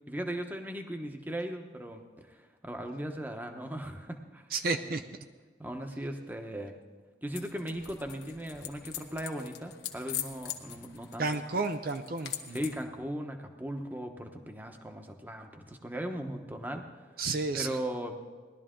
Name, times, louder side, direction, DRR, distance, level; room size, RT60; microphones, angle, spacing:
voice 1, 0.1-4.4 5.6-6.8 7.2-11.6 12.5-16.8 17.5-18.2, equal, 10° right, 4 dB, 0.9 m, -38 dB
voice 2, 4.5-5.0 11.2-12.6 17.2-17.8, right 3 dB, 55° right, 8 dB, 0.6 m, -31 dB
sound 1, 7.3-12.8, left 10 dB, 70° left, 1.1 m, -42 dB
19.0 x 12.0 x 3.8 m, 1.5 s
head